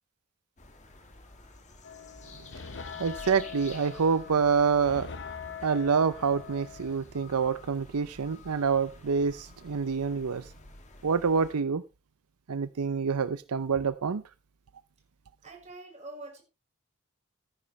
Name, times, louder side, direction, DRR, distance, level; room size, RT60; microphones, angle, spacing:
sound 1, 0.6-11.6, left 3 dB, 30° left, 2.3 m, -51 dB
sound 2, 1.8-7.0, left 7 dB, 55° left, 1.0 m, -43 dB
voice 1, 3.0-5.4 5.6-10.5 11.0-11.8 12.5-14.2, right 5 dB, 80° right, 0.6 m, -27 dB
voice 2, 15.4-16.4, right 2 dB, 30° right, 4.5 m, -44 dB
13.5 x 10.5 x 3.2 m
head